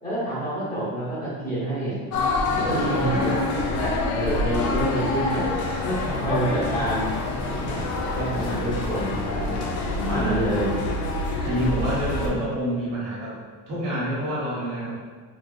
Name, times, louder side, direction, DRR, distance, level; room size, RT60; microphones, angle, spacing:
voice 1, 0.0-2.0 2.5-5.4 5.8-7.1 7.5-7.9 8.1-9.6 10.0-10.7, right 1 dB, 20° left, -9 dB, 1.2 m, -28 dB
sound 1, 2.1-12.3, left 2 dB, 50° left, 0.5 m, -26 dB
voice 2, 2.5-3.3 10.1-10.7 11.4-13.4 13.7-14.9, right 1 dB, 55° right, -7 dB, 1.4 m, -28 dB
4.2 x 2.3 x 2.5 m, 1.5 s
cardioid pair, 170°, 39 cm